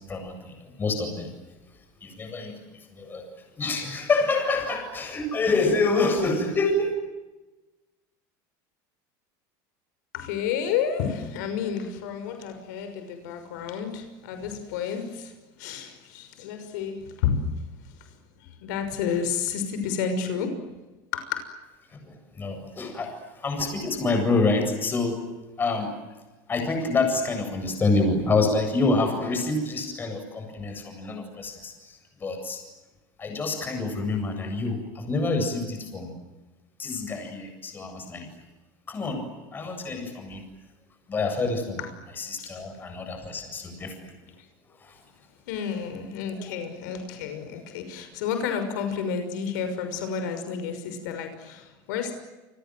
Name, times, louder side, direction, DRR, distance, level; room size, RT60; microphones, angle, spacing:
voice 1, 0.1-1.3 2.0-3.3 3.6-6.9 21.9-25.2 25.6-25.9 26.5-32.6 33.2-36.2 36.8-38.3 38.9-40.4 41.1-41.8 42.1-44.1 44.8-45.0 46.4-46.5, left 3 dB, 20° left, 5 dB, 7.8 m, -27 dB
voice 2, 10.1-15.3 15.6-17.5 18.6-20.6 21.1-21.4 45.5-52.1, left 7 dB, 80° left, 8 dB, 6.1 m, -30 dB
29.5 x 26.0 x 7.9 m, 1.1 s
cardioid pair, 155°, 10 cm